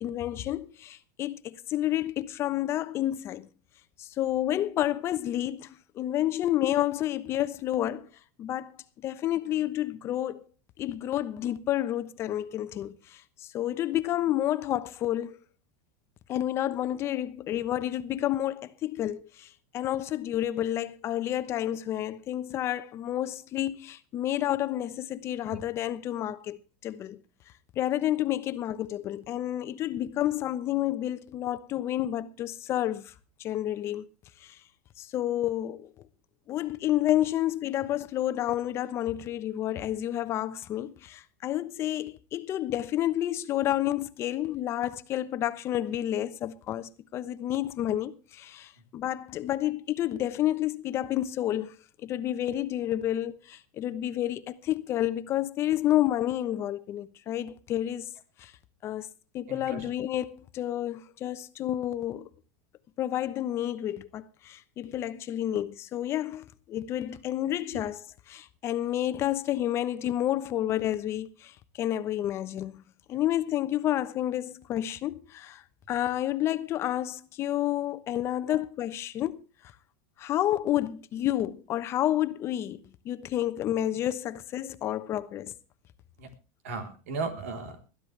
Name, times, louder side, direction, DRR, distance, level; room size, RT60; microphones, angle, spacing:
voice 1, 0.0-3.5 4.0-5.7 5.9-8.1 8.4-10.5 10.8-15.4 16.3-26.6 26.8-27.2 27.8-33.1 33.4-34.1 34.4-34.6 35.0-35.9 36.5-51.7 52.0-58.1 58.4-58.5 58.8-59.1 59.3-62.3 63.0-79.4 80.2-85.5, left 12 dB, 35° left, 1.0 m, -30 dB
voice 2, 59.5-59.8 78.5-78.6 86.2-86.3 86.6-87.8, right 4 dB, 80° right, 3.9 m, -35 dB
21.0 x 12.5 x 3.4 m
supercardioid pair, 135°, 7 cm